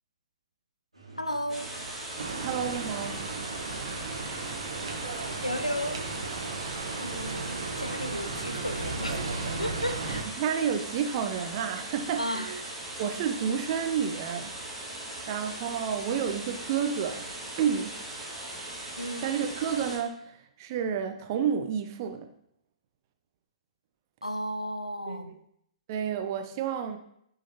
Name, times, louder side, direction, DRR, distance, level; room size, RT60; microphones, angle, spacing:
sound 1, 0.9-6.9, right 3 dB, 80° right, 1.8 m, -50 dB
voice 1, 1.2-1.7 5.4-6.1 7.0-9.2 9.6-10.2 12.2-12.5 19.0-19.3 24.2-25.4, equal, 90° left, 8 dB, 0.5 m, -34 dB
sound 2, 1.5-20.0, right 1 dB, 5° right, 1.9 m, -39 dB
sound 3, 2.2-10.2, right 3 dB, 55° right, 1.0 m, -35 dB
voice 2, 2.3-3.3 10.4-12.6 13.0-14.5 15.3-17.3 17.6-18.0 19.2-22.3 25.1-25.4 25.9-27.0, right 8 dB, 35° right, 7 dB, 0.5 m, -30 dB
8.9 x 3.8 x 2.8 m, 0.73 s
figure-of-eight pair, 120°, 3 cm